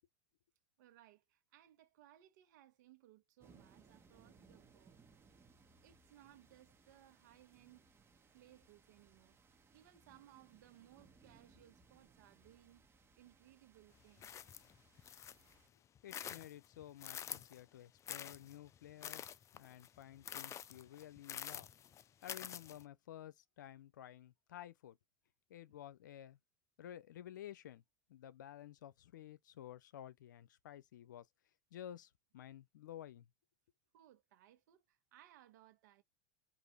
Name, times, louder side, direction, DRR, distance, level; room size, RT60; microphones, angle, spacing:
voice 1, 0.8-5.0 5.8-7.8 8.3-12.8 13.2-14.4 33.9-36.0, right 13 dB, 70° right, 1.3 m, -64 dB
sound 1, 3.4-15.7, right 4 dB, 25° right, 1.2 m, -67 dB
sound 2, 14.2-15.5 15.9-17.6 18.1-22.8, left 9 dB, 30° left, 0.4 m, -48 dB
voice 2, 16.0-21.7 22.2-25.0 25.5-26.4 26.8-27.8 28.1-31.3 31.7-33.3, left 11 dB, 85° left, 0.5 m, -53 dB
5.0 x 2.6 x 4.0 m
hypercardioid pair, 95°, 10 cm